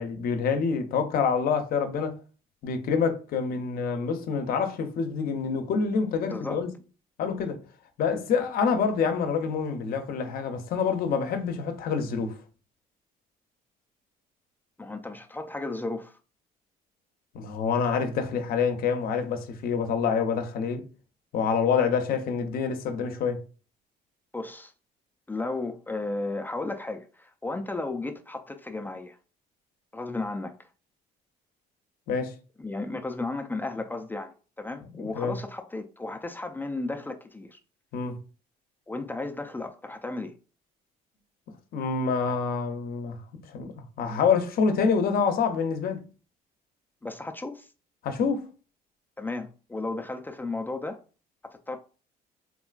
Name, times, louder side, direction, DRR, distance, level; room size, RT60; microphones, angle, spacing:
voice 1, 0.0-2.2 2.6-6.7 7.2-7.6 8.0-12.4 17.3-20.8 21.3-23.4 32.1-32.3 34.9-35.4 37.9-38.2 41.7-43.7 44.0-46.0 48.0-48.5, left 6 dB, 60° left, 0.6 m, -27 dB
voice 2, 6.3-6.6 14.8-16.1 24.3-24.7 25.3-29.2 29.9-30.7 32.6-37.6 38.9-40.3 47.0-47.7 49.2-51.0 51.4-51.8, left 2 dB, 10° left, 0.3 m, -34 dB
3.6 x 2.4 x 2.3 m
cardioid pair, 110°, 17 cm